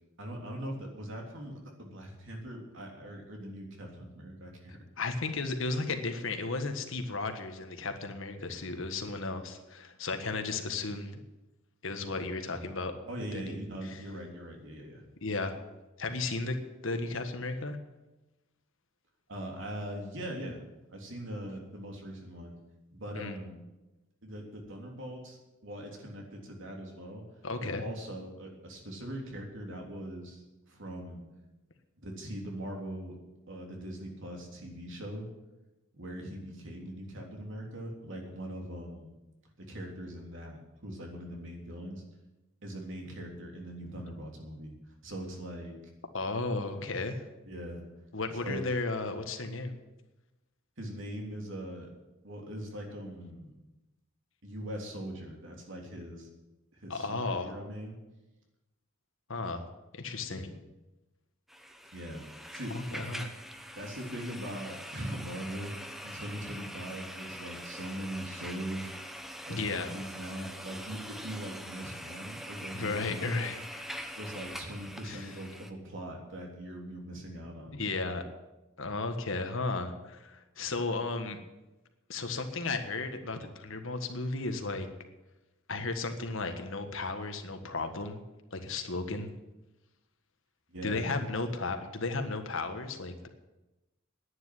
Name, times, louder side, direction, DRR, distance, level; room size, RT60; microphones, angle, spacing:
voice 1, 0.2-4.8 13.1-15.0 19.3-20.6 20.9-22.6 22.9-23.6 24.2-27.2 27.6-31.2 32.0-33.2 33.5-35.3 35.9-39.1 39.6-42.0 42.6-44.7 45.0-45.8 47.4-47.8 48.3-48.6 50.8-51.9 52.2-53.5 54.4-56.3 56.7-58.0 60.3-60.5 61.9-62.3 62.5-63.0 63.7-68.9 69.4-73.2 74.2-77.9 90.7-91.2, right 1 dB, 65° right, 1 dB, 3.4 m, -41 dB
voice 2, 5.0-11.1 11.8-12.9 13.5-13.6 13.8-14.0 15.2-15.6 16.0-16.6 16.8-17.8 23.1-23.4 27.4-27.8 46.1-47.2 48.1-49.8 56.9-57.5 59.3-59.6 59.9-60.5 62.7-63.3 69.5-70.0 72.7-73.9 75.0-75.3 77.7-78.2 78.8-81.4 82.1-84.9 85.7-88.2 88.5-89.3 90.8-93.3, left 3 dB, 65° left, 6 dB, 1.6 m, -34 dB
sound 1, 61.5-75.7, equal, ahead, 1.0 m, -44 dB
10.5 x 9.9 x 9.7 m, 1.0 s
head